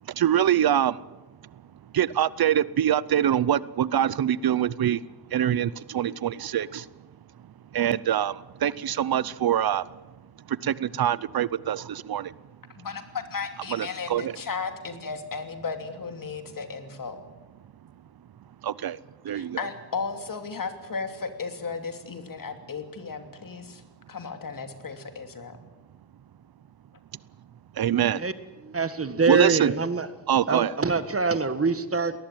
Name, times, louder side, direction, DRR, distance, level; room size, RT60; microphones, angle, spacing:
voice 1, 0.2-0.9 1.9-5.0 5.3-6.8 7.7-8.4 8.6-9.8 10.6-12.3 13.7-14.3 18.6-19.0 19.3-19.6 27.8-28.2 29.3-29.7 30.3-30.7, right 10 dB, 75° right, 0.7 m, -24 dB
voice 2, 12.8-17.2 19.3-23.8 24.1-25.6, left 5 dB, 60° left, 2.9 m, -35 dB
voice 3, 28.2-30.1 30.5-32.1, right 4 dB, 40° right, 1.7 m, -25 dB
21.0 x 19.0 x 9.2 m
wide cardioid pair, 85°, 36 cm